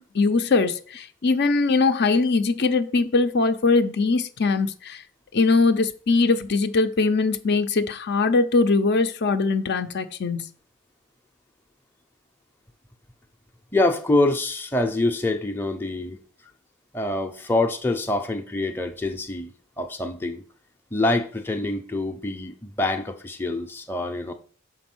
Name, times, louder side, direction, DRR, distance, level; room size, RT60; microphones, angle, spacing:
voice 1, 0.1-5.0 5.3-10.5, left 3 dB, 55° left, 0.6 m, -21 dB
voice 2, 13.7-16.2 16.9-19.5 19.8-20.4 20.9-24.3, left 2 dB, 10° left, 0.6 m, -25 dB
6.1 x 4.6 x 6.1 m
head